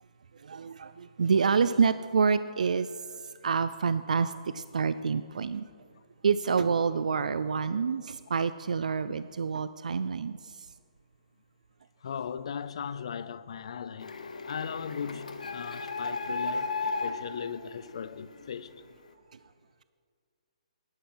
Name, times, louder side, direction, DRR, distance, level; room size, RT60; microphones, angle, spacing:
voice 1, 0.3-5.6 6.2-10.7, right 5 dB, 85° right, 0.4 m, -28 dB
voice 2, 12.0-14.2 14.5-18.7, left 7 dB, 50° left, 0.4 m, -38 dB
Printer, 14.0-18.6, left 3 dB, 90° left, 1.1 m, -35 dB
10.5 x 9.3 x 6.1 m
hypercardioid pair, 170°, 4 cm